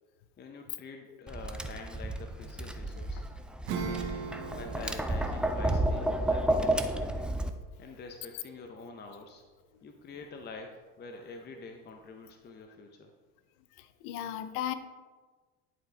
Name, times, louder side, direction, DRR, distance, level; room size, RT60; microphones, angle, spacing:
voice 1, 0.4-3.2 3.7-4.2 4.5-7.3 7.8-9.4 9.8-13.1, left 3 dB, 30° left, 4 dB, 0.7 m, -46 dB
Tap, 1.3-7.5, right 1 dB, 5° right, 0.3 m, -31 dB
Acoustic guitar / Strum, 3.7-9.7, right 5 dB, 75° right, 1.2 m, -42 dB
voice 2, 13.8-14.7, left 11 dB, 80° left, 11 dB, 0.7 m, -36 dB
10.5 x 4.5 x 3.3 m, 1.4 s
supercardioid pair, 100°, 34 cm